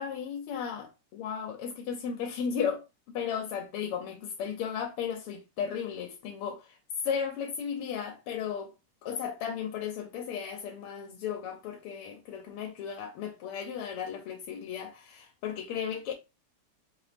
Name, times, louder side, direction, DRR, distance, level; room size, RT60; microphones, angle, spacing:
voice 1, 0.0-6.8 7.0-8.7 9.0-16.1, left 7 dB, 85° left, 1.6 m, -35 dB
4.3 x 2.9 x 3.3 m
omnidirectional pair, 2.4 m